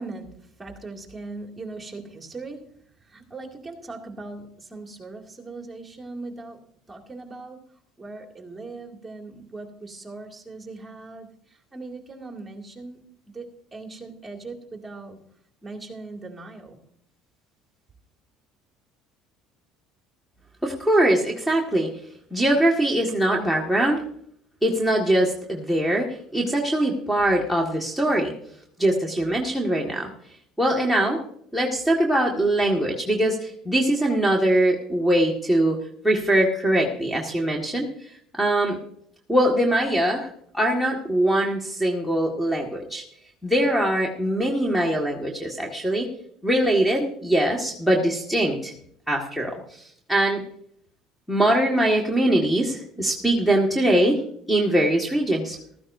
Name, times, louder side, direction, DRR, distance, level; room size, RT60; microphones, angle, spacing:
voice 1, 0.0-2.7 3.1-6.6 6.9-7.6 8.0-11.3 11.7-13.0 13.3-15.2 15.6-16.8, right 3 dB, 15° right, 2 dB, 2.3 m, -39 dB
voice 2, 20.6-21.9 22.3-24.0 24.6-26.1 26.3-28.3 28.8-30.1 30.6-31.2 31.5-35.8 36.0-38.1 38.4-38.8 39.3-43.0 43.4-46.1 46.4-48.7 49.1-49.8 50.1-50.4 51.3-54.2 54.5-55.6, right 1 dB, ahead, 0 dB, 1.7 m, -22 dB
15.0 x 14.0 x 2.7 m, 0.66 s
cardioid pair, 125°, 0 cm